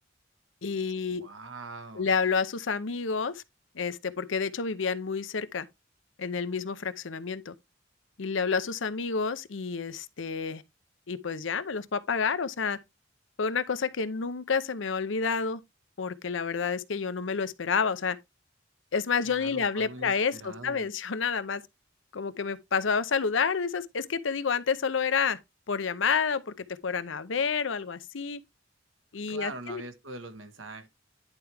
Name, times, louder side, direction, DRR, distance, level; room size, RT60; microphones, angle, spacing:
voice 1, 0.6-1.2 1.9-3.4 3.7-5.7 6.2-7.5 8.2-10.6 11.1-12.8 13.4-15.6 16.0-18.2 18.9-21.6 22.1-25.4 25.7-26.5 26.8-28.4 29.1-29.8, left 5 dB, 80° left, 0.7 m, -29 dB
voice 2, 1.2-2.1 19.2-20.9 29.3-30.9, right 3 dB, 90° right, 1.5 m, -42 dB
10.5 x 4.6 x 3.4 m
head